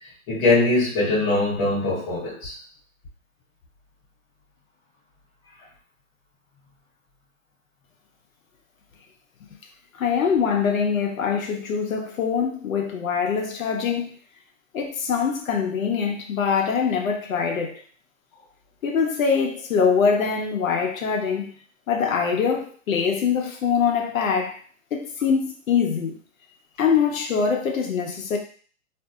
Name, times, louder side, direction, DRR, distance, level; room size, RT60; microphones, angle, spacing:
voice 1, 0.3-2.5, left 2 dB, 20° left, -8 dB, 0.7 m, -21 dB
voice 2, 9.9-14.1 14.7-17.8 18.8-21.5 21.9-24.6 24.9-26.1 26.8-28.4, left 6 dB, 75° left, 3 dB, 0.7 m, -23 dB
2.7 x 2.5 x 2.3 m, 0.44 s
hypercardioid pair, 160°, 41 cm